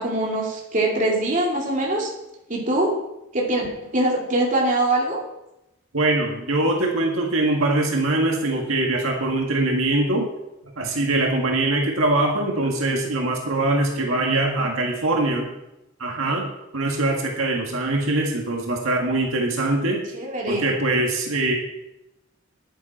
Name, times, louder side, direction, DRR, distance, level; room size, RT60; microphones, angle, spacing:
voice 1, 0.0-2.1 2.5-2.9 3.3-3.7 3.9-5.2 20.1-20.6, right 1 dB, 40° right, -2 dB, 2.6 m, -23 dB
voice 2, 5.9-10.3 10.8-15.5 16.0-16.5 16.7-20.0 20.5-21.5, right 2 dB, 90° right, 0 dB, 1.9 m, -22 dB
10.5 x 9.8 x 4.4 m, 0.90 s
head